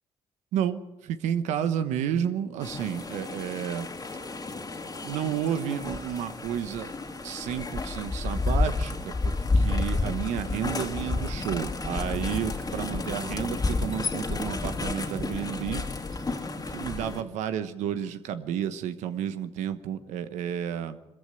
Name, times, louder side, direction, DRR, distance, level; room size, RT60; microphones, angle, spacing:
voice 1, 0.5-3.9 5.0-6.9 7.2-15.8 16.3-21.0, right 9 dB, 90° right, 10 dB, 1.2 m, -31 dB
sound 1, 2.6-17.2, left 3 dB, 35° left, 2.5 m, -31 dB
23.0 x 14.5 x 7.9 m, 1.0 s
supercardioid pair, 60°, 12 cm